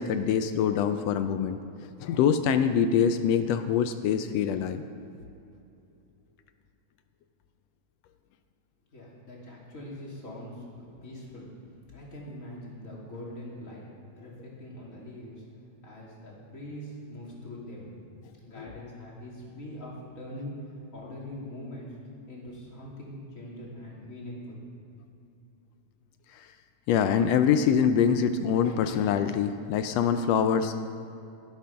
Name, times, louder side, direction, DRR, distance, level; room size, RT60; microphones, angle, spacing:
voice 1, 0.0-4.8 18.6-18.7 26.9-30.7, left 7 dB, 80° left, 9 dB, 1.5 m, -24 dB
voice 2, 8.9-11.5 11.9-13.8 14.1-15.4 15.8-17.9 18.4-21.9 22.3-24.6, left 1 dB, 25° left, -4 dB, 3.0 m, -42 dB
12.0 x 12.0 x 5.7 m, 2.8 s
omnidirectional pair, 3.3 m